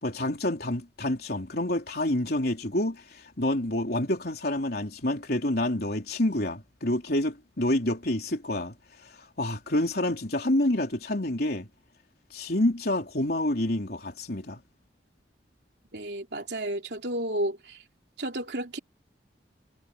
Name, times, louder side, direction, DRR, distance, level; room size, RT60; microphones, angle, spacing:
voice 1, 0.0-8.7 9.0-11.7 12.3-14.6, left 1 dB, 60° left, 3.7 m, -28 dB
voice 2, 15.9-17.8 18.2-18.8, right 1 dB, 70° right, 3.3 m, -32 dB
head